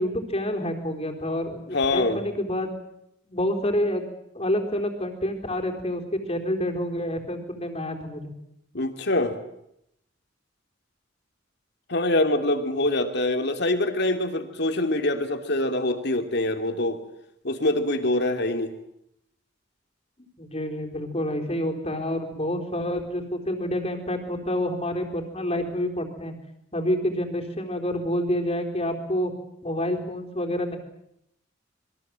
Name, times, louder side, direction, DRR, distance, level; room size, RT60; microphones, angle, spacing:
voice 1, 0.0-2.7 3.3-4.1 4.3-8.3 20.4-26.4 26.7-29.3 29.6-30.8, left 1 dB, 35° left, 3 dB, 4.1 m, -28 dB
voice 2, 1.7-2.2 8.7-9.4 11.9-17.0 17.4-18.7, left 1 dB, 60° left, 6 dB, 2.8 m, -24 dB
27.0 x 22.0 x 7.7 m, 0.77 s
head